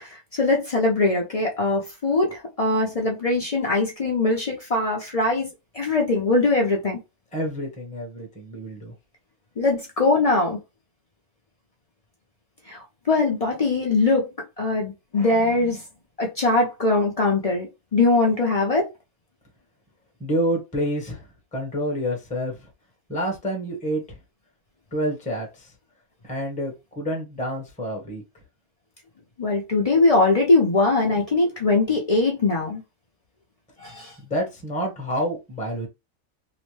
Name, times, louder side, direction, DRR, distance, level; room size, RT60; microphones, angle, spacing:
voice 1, 0.0-5.5 5.7-7.0 9.6-10.6 12.7-14.3 14.6-15.8 16.2-18.9 29.4-32.8 33.8-34.1, left 3 dB, 55° left, 0.4 m, -21 dB
voice 2, 7.3-8.9 20.2-22.6 23.1-24.2 24.9-25.7 26.2-28.2 34.2-35.9, equal, 5° left, 0.8 m, -28 dB
2.9 x 2.1 x 3.1 m
omnidirectional pair, 1.5 m